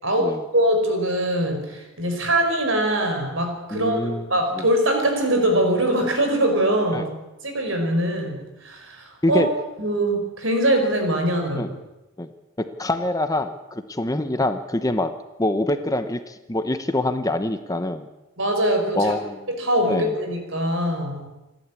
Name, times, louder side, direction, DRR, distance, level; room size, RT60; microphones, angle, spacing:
voice 1, 0.0-7.1 7.4-9.4 9.8-11.7 18.4-19.1 19.5-21.3, right 1 dB, 65° right, 4 dB, 5.0 m, -22 dB
voice 2, 3.7-4.3 4.5-4.6 6.9-7.1 9.2-9.5 11.5-11.7 12.2-12.3 12.8-15.1 15.4-18.1 19.0-19.5 19.9-20.1, left 1 dB, 15° left, 9 dB, 0.9 m, -25 dB
27.5 x 12.0 x 8.4 m, 1.0 s
head